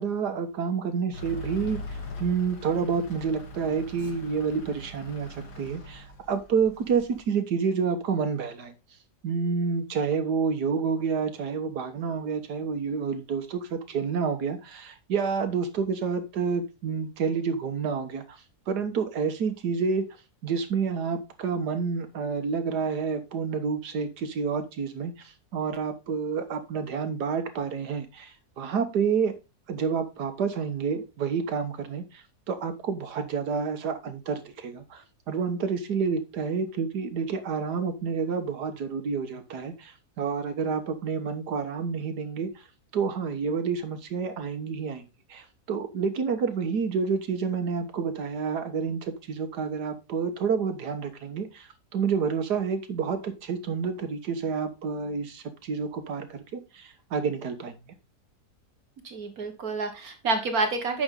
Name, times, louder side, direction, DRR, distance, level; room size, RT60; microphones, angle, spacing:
voice 1, 0.0-1.8 2.2-8.7 9.2-18.4 18.7-20.0 20.4-25.1 25.5-29.3 29.7-39.9 40.2-42.5 42.9-45.0 45.3-57.7, right 5 dB, 85° right, 9 dB, 1.8 m, -29 dB
Truck / Idling, 1.1-7.2, left 2 dB, 85° left, 2.3 m, -41 dB
voice 2, 59.0-61.0, right 3 dB, 65° right, 6 dB, 2.0 m, -28 dB
9.3 x 6.4 x 3.8 m, 0.27 s
omnidirectional pair, 1.7 m